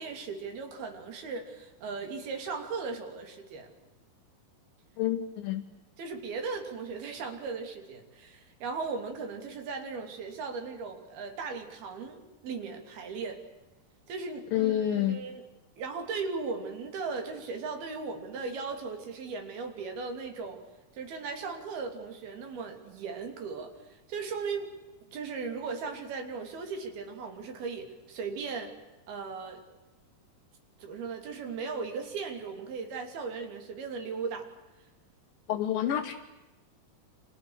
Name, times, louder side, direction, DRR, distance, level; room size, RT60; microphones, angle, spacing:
voice 1, 0.0-3.7 6.0-13.4 14.1-15.4 15.8-20.6 20.9-24.8 25.1-28.7 29.1-29.6 30.8-34.5, right 4 dB, 85° right, 4 dB, 5.0 m, -37 dB
voice 2, 5.0-5.6 14.5-15.2 35.5-36.1, left 11 dB, 70° left, 3 dB, 2.8 m, -28 dB
30.0 x 27.0 x 6.6 m, 1.1 s
omnidirectional pair, 4.3 m